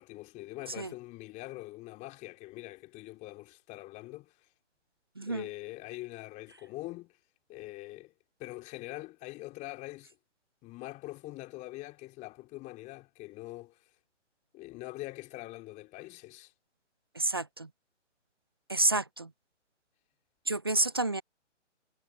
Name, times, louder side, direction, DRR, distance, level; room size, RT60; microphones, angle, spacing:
voice 1, 0.0-4.5 5.2-7.2 7.5-8.1 8.4-10.2 10.6-13.8 14.5-16.5, left 19 dB, 20° left, 4.0 m, -43 dB
voice 2, 5.2-5.5 17.2-17.7 18.7-19.3 20.5-21.2, right 2 dB, 20° right, 0.3 m, -29 dB
figure-of-eight pair, 135°, 36 cm